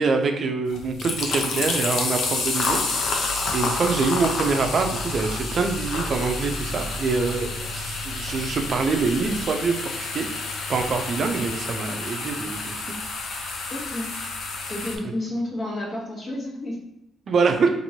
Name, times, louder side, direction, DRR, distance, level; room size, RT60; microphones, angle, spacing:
voice 1, 0.0-2.8 3.5-10.4 10.7-12.9 17.3-17.7, right 4 dB, 50° right, 5 dB, 0.4 m, -25 dB
sound 1, 0.7-15.0, left 3 dB, 70° left, 0.5 m, -29 dB
sound 2, 2.6-9.5, right 2 dB, 90° left, 1.3 m, -38 dB
voice 2, 13.7-14.1 14.7-16.8, left 1 dB, 45° left, -3 dB, 1.1 m, -30 dB
2.9 x 2.6 x 2.7 m, 0.84 s
cardioid pair, 90°, 0 cm